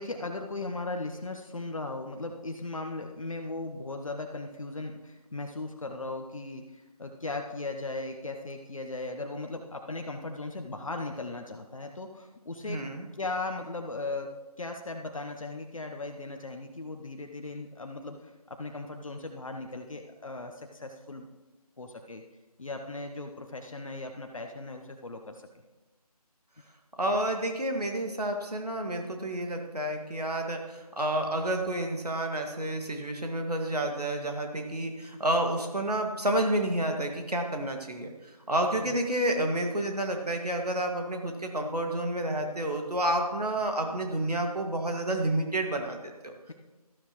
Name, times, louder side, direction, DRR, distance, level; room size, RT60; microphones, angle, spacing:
voice 1, 0.0-12.8 13.2-14.3 14.6-21.3 21.8-22.2 22.6-25.4 38.7-39.0, left 2 dB, 55° left, 4 dB, 0.9 m, -37 dB
voice 2, 12.7-13.1 27.0-38.1 38.5-46.3, right 1 dB, 75° right, 3 dB, 2.0 m, -30 dB
13.0 x 12.0 x 3.1 m, 1.1 s
figure-of-eight pair, 160°, 20 cm